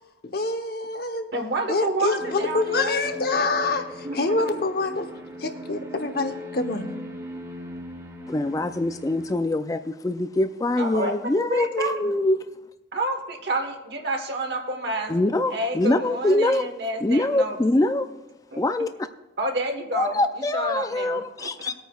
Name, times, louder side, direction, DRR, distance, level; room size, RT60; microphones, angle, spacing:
voice 1, 0.2-1.3 1.7-5.0 5.4-6.9, left 3 dB, 55° left, 6 dB, 0.8 m, -26 dB
voice 2, 1.3-3.0 4.0-4.6 10.8-11.1 11.5-12.1 12.9-15.1 15.5-17.6 19.4-20.2 20.5-21.7, right 2 dB, 60° right, 4 dB, 1.2 m, -29 dB
sound 1, 2.2-9.4, left 2 dB, 20° right, 1.1 m, -38 dB
voice 3, 8.3-12.4 15.1-16.6 17.0-18.1 18.6-18.9 19.9-21.7, left 2 dB, 20° left, 9 dB, 0.3 m, -24 dB
20.0 x 9.0 x 2.3 m, 1.0 s
head